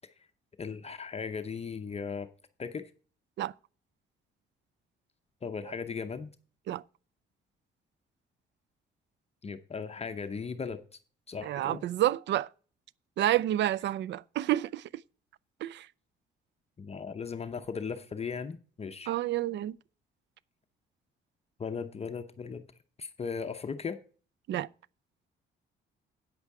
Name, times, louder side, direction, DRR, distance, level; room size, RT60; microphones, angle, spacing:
voice 1, 0.6-2.3 2.6-2.9 5.4-6.3 9.4-10.8 11.3-11.8 16.8-19.1 21.6-22.7 23.0-24.0, left 5 dB, 30° left, 0.7 m, -37 dB
voice 2, 11.4-12.5 13.2-14.8 15.6-15.9 19.1-19.8 24.5-24.7, right 13 dB, 65° right, 0.4 m, -29 dB
9.1 x 8.1 x 4.7 m
cardioid pair, 90°, 20 cm